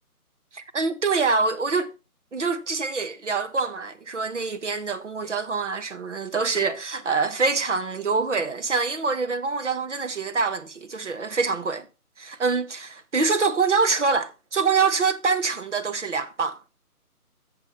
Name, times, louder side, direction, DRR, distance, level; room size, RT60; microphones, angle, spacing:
voice 1, 0.5-1.9 2.3-11.9 12.2-16.6, right 4 dB, 50° right, 1.2 m, -25 dB
11.5 x 7.0 x 4.6 m
figure-of-eight pair, 160°, 46 cm